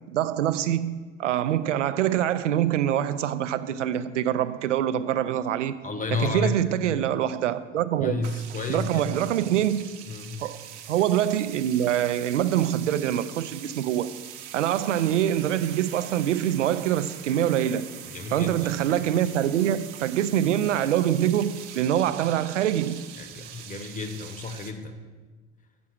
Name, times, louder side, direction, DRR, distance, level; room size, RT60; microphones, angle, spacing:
voice 1, 0.1-5.7 6.1-8.2 8.7-10.0 10.4-10.6 10.9-14.2 14.5-17.9 18.3-23.0, right 11 dB, 85° right, 0.5 m, -25 dB
voice 2, 5.8-6.6 8.0-9.3 10.1-10.4 18.1-18.7 23.2-24.9, left 3 dB, 20° left, 0.9 m, -32 dB
sound 1, 8.2-24.7, right 10 dB, 65° right, 0.9 m, -43 dB
7.3 x 6.1 x 6.3 m
hypercardioid pair, 75°, 36 cm